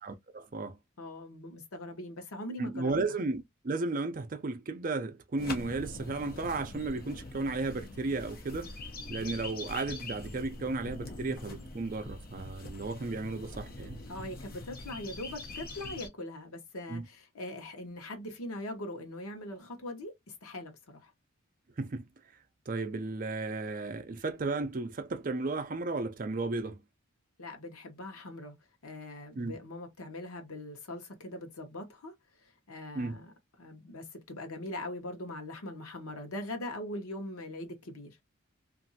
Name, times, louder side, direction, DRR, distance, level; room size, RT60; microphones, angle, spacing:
voice 1, 0.0-0.8 2.6-8.8 9.1-14.0 16.9-17.1 21.8-22.1 22.7-26.8 29.3-29.5 32.9-33.2, right 3 dB, 40° right, 0.4 m, -34 dB
voice 2, 1.0-2.9 14.1-21.1 27.4-28.5 28.8-32.1 32.4-33.3 33.6-38.2, left 1 dB, 85° left, 0.9 m, -41 dB
sound 1, 5.4-16.1, left 2 dB, 45° left, 0.7 m, -43 dB
2.9 x 2.5 x 2.7 m
head